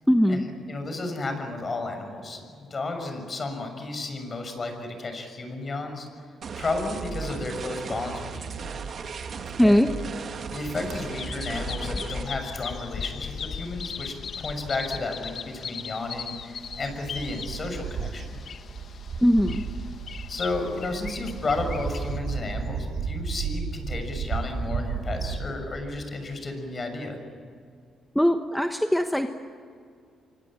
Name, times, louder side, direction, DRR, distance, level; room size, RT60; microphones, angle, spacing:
voice 1, 0.1-0.4 9.6-9.9 19.2-19.6 28.1-29.3, equal, 5° left, 6 dB, 1.2 m, -20 dB
voice 2, 0.7-6.1 6.5-8.6 9.6-9.8 10.5-18.4 20.3-27.2, left 3 dB, 35° left, 6 dB, 6.7 m, -33 dB
sound 1, 6.4-12.2, right 5 dB, 55° right, 2.4 m, -36 dB
Bird vocalization bird call bird song, 10.8-22.2, left 6 dB, 50° left, 1.4 m, -38 dB
sound 2, 10.9-11.0 11.5-11.8 12.1-13.6 14.2-14.3 16.0-25.4, right 5 dB, 70° right, 4.2 m, -34 dB
27.0 x 24.5 x 8.9 m, 2.2 s
cardioid pair, 105°, 0 cm